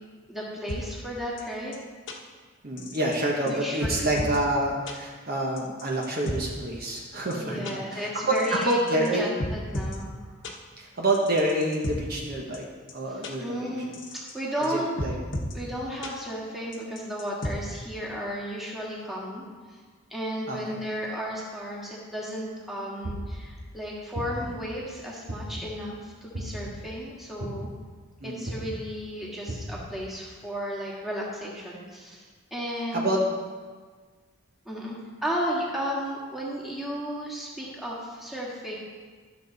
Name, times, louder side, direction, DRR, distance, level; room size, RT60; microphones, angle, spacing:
voice 1, 0.3-1.7 3.5-4.3 7.4-10.3 13.1-14.9 15.5-19.8 20.1-27.7 28.2-33.1 34.7-35.0 35.2-38.7, equal, ahead, -5 dB, 1.7 m, -34 dB
sound 1, 0.7-0.8 1.4-1.5 1.7-1.8 2.1-2.2 2.8-3.2 3.5-3.6 3.8-4.4 4.9-5.0 5.6-6.4 7.0-7.1 7.3-7.4 7.6-7.7 8.4-9.1 9.4-10.0 10.4-10.5 11.1-12.0 12.5-12.6 12.9-13.0 13.2-13.3 13.9-14.3 14.6-14.7 15.0-15.5 16.0-16.1 16.7-17.5, left 1 dB, 60° left, 1.1 m, -33 dB
voice 2, 2.6-8.1 8.6-9.3 10.8-12.7 12.9-13.8 14.7-15.1 20.5-20.8 28.2-28.5 32.9-33.2, right 1 dB, 45° right, -1 dB, 1.1 m, -28 dB
sound 2, 23.0-23.5 24.1-24.6 25.3-25.7 26.3-26.7 27.4-27.8 28.4-28.8 29.5-29.8, right 1 dB, 85° right, 1.6 m, -35 dB
12.5 x 7.0 x 4.0 m, 1.5 s
head